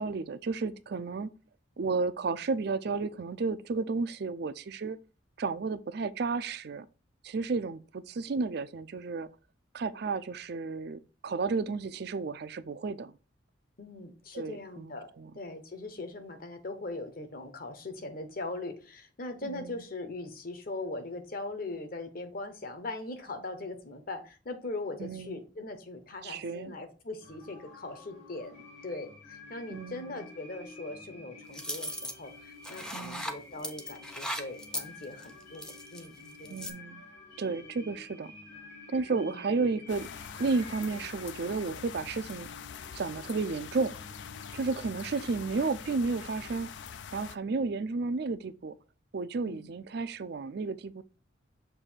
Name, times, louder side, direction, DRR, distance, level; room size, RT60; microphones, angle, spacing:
voice 1, 0.0-1.3 1.8-5.0 5.4-6.9 7.2-9.3 9.7-13.1 14.3-15.3 19.4-19.8 25.0-25.4 26.2-26.8 29.7-30.2 32.9-33.3 36.5-37.0 37.4-38.3 38.9-40.1 40.4-42.5 42.9-43.9 44.5-46.7 47.1-48.8 49.1-51.0, right 4 dB, 55° right, 0.4 m, -32 dB
voice 2, 13.8-36.7 37.8-37.9 39.1-39.4 49.5-49.6, left 2 dB, 50° left, 1.0 m, -40 dB
sound 1, 27.2-46.6, left 3 dB, 85° left, 3.3 m, -51 dB
sound 2, 31.5-32.1 32.6-33.3 33.6-36.1 36.4-36.7, left 1 dB, 5° left, 0.6 m, -37 dB
sound 3, 39.9-47.4, left 7 dB, 65° left, 0.4 m, -44 dB
6.7 x 2.7 x 5.6 m
head